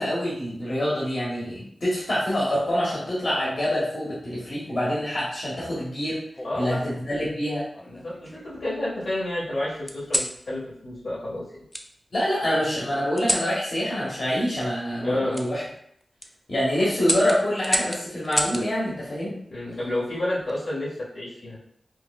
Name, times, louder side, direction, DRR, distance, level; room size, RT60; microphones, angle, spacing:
voice 1, 0.0-6.2 6.5-7.6 12.1-15.6 16.5-19.4, equal, 60° left, -8 dB, 1.2 m, -26 dB
sound 1, 2.5-3.6 4.7-5.1 6.3-7.1 7.7-8.6 9.9-10.4 11.7-11.9 13.2-13.5 15.3-15.5 16.0-16.3 17.0-18.7 20.2-20.6, left 1 dB, 20° left, 0.4 m, -30 dB
voice 2, 6.4-6.8 7.9-11.4 15.0-15.4 19.5-21.6, left 1 dB, 75° left, -8 dB, 1.5 m, -30 dB
4.6 x 2.2 x 2.3 m, 0.70 s
cardioid pair, 45°, 0 cm